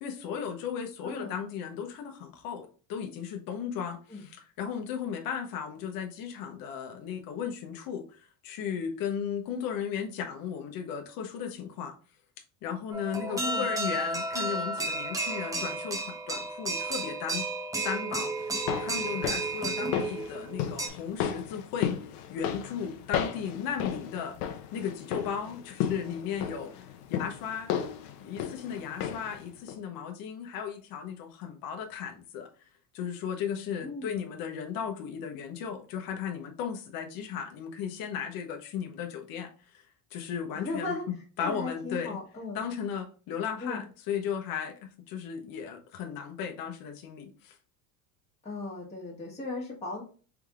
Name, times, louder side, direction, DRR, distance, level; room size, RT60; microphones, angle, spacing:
voice 1, 0.0-12.0 12.6-17.5 17.8-21.9 22.3-24.4 24.7-26.7 27.1-27.7 28.2-32.5 32.9-39.8 40.1-42.2 42.5-47.5, left 7 dB, 50° left, 0.8 m, -36 dB
voice 2, 1.0-1.3 4.1-4.2 13.2-13.7 19.8-20.0 33.8-34.1 40.5-41.0 41.4-42.6 43.6-43.8 48.4-50.0, left 3 dB, 15° left, 1.3 m, -36 dB
sound 1, 12.9-20.9, right 2 dB, 10° right, 0.5 m, -32 dB
sound 2, 18.4-29.4 29.7-29.8, left 9 dB, 85° left, 0.8 m, -34 dB
3.5 x 3.3 x 3.6 m
cardioid pair, 150°, 43 cm